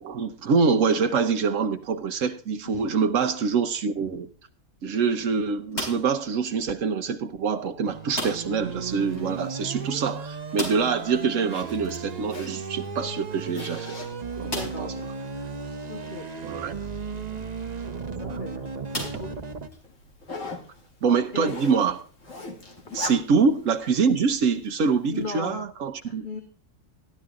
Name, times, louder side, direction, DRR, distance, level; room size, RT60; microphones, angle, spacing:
voice 1, 0.0-4.3 4.8-13.9 14.4-14.9 16.4-16.8 18.2-18.4 21.0-22.0 22.9-26.3, right 5 dB, 80° right, 1.2 m, -25 dB
sound 1, 5.7-6.3 8.1-8.7 8.9-9.0 9.4-9.5 10.5-11.1 12.8-12.9 13.6-13.7 14.5-15.0 15.7-15.8 17.8-18.0 18.9-19.8, left 1 dB, 60° left, 5.0 m, -34 dB
sound 2, 7.8-19.7, right 5 dB, 35° right, 1.0 m, -35 dB
Zipper (clothing), 8.9-25.4, left 3 dB, 80° left, 2.9 m, -44 dB
voice 2, 14.4-15.1 15.9-16.3 18.2-18.7 19.0-19.4 21.3-21.5 25.1-25.6 26.0-26.4, left 3 dB, 40° left, 1.6 m, -36 dB
14.0 x 11.0 x 3.7 m
omnidirectional pair, 1.3 m